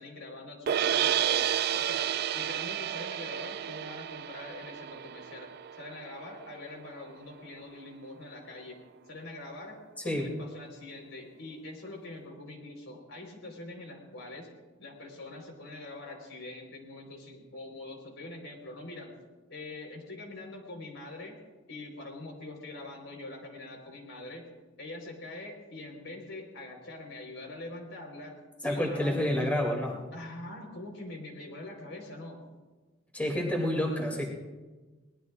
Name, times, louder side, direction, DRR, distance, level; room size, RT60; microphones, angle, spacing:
voice 1, 0.0-1.5 1.7-14.5 14.8-19.1 19.5-21.3 21.7-24.5 24.8-29.3 30.1-32.4, left 2 dB, 70° left, 2 dB, 4.0 m, -44 dB
sound 1, 0.7-6.8, right 10 dB, 50° right, 0.3 m, -31 dB
voice 2, 28.6-30.0 33.1-34.3, left 1 dB, 10° left, -1 dB, 2.6 m, -29 dB
24.0 x 19.0 x 2.4 m, 1.3 s
head